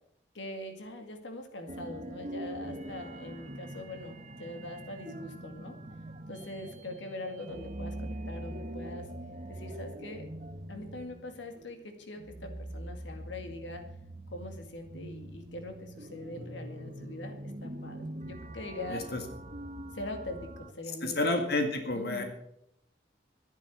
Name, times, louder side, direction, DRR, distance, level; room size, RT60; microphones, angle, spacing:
voice 1, 0.3-5.8 6.3-9.1 9.5-10.3 10.7-13.8 14.3-19.1 19.9-21.2 21.9-22.2, left 1 dB, 80° left, 6 dB, 2.2 m, -42 dB
sound 1, 1.7-20.7, right 1 dB, 40° right, 1.2 m, -43 dB
voice 2, 21.0-22.2, left 2 dB, 55° left, 5 dB, 2.1 m, -30 dB
12.5 x 10.5 x 8.1 m, 0.74 s
head